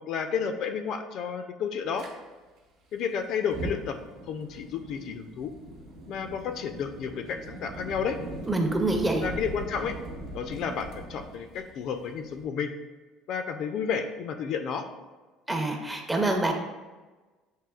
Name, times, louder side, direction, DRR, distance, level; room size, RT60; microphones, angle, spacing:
voice 1, 0.1-2.1 2.9-4.0 4.3-5.5 6.1-8.2 9.2-10.0 10.3-12.7 13.3-14.9, left 6 dB, 55° left, 6 dB, 0.3 m, -31 dB
Fire, 1.9-2.1 3.4-12.4, right 1 dB, 65° right, 0.9 m, -40 dB
voice 2, 8.5-9.2 15.5-16.5, right 2 dB, 10° right, 3 dB, 0.5 m, -26 dB
7.4 x 2.7 x 2.3 m, 1.3 s
cardioid pair, 140°, 0 cm